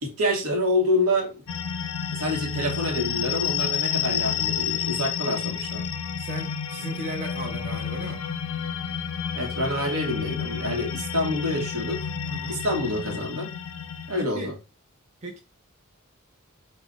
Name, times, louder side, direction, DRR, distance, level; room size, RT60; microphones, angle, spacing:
voice 1, 0.0-1.4 2.1-5.8 9.3-12.1 12.5-13.5 14.1-14.5, left 1 dB, 85° right, 0.9 m, -27 dB
sound 1, 1.5-14.3, left 8 dB, 65° left, 0.3 m, -30 dB
voice 2, 6.2-8.2 12.2-12.7 14.2-14.5 15.2-15.4, right 2 dB, 35° right, 0.6 m, -36 dB
3.6 x 2.1 x 2.3 m
head